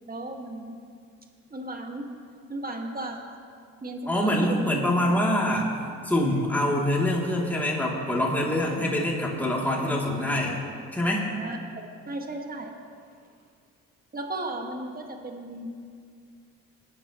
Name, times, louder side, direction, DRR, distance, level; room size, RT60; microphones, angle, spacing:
voice 1, 0.1-0.8 1.5-2.1 2.5-3.4 3.8-5.2 11.4-11.6 12.1-12.7 14.1-15.7, right 2 dB, 30° right, 2 dB, 2.0 m, -35 dB
voice 2, 4.1-5.7 6.0-10.6 10.9-11.3, left 1 dB, 5° left, -4 dB, 3.0 m, -25 dB
20.0 x 9.9 x 3.2 m, 2.2 s
supercardioid pair, 60°, 31 cm